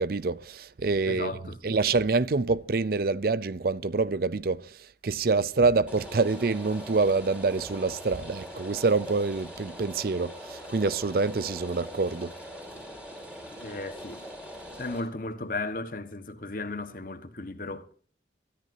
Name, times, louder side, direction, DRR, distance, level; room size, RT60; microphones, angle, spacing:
voice 1, 0.0-1.3 1.6-4.8 5.0-12.3, right 4 dB, 55° right, 0.6 m, -26 dB
voice 2, 1.1-1.8 13.6-14.2 14.8-17.9, left 2 dB, 50° left, 1.5 m, -35 dB
Rain, 5.9-15.0, equal, 5° right, 4.8 m, -42 dB
23.5 x 13.5 x 2.8 m
head